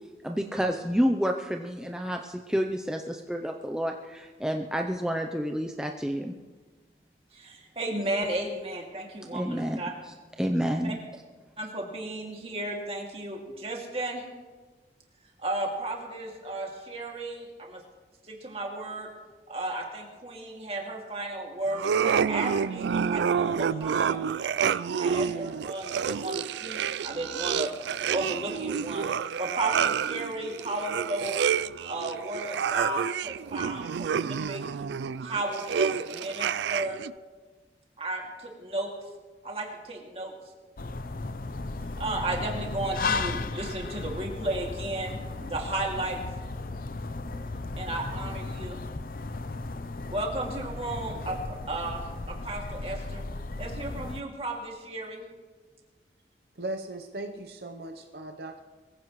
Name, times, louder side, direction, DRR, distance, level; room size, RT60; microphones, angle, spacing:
voice 1, 0.2-6.3 9.3-9.8 10.4-11.0, equal, 5° right, 3 dB, 0.6 m, -29 dB
voice 2, 7.3-9.9 10.8-10.9 11.6-14.2 15.4-17.8 18.2-19.1 19.5-21.9 22.3-24.3 25.0-27.8 28.1-29.1 29.4-31.4 31.8-34.6 35.2-37.0 38.0-38.9 39.4-40.3 42.0-46.2 47.8-48.8 50.1-53.2 53.6-55.3, right 1 dB, 35° right, 0 dB, 2.4 m, -34 dB
sound 1, 21.7-37.1, right 7 dB, 75° right, 0.3 m, -29 dB
sound 2, 40.8-54.2, left 3 dB, 50° left, 0.6 m, -35 dB
voice 3, 56.6-58.6, right 2 dB, 60° right, 4 dB, 0.8 m, -38 dB
22.5 x 15.5 x 3.1 m, 1.4 s
head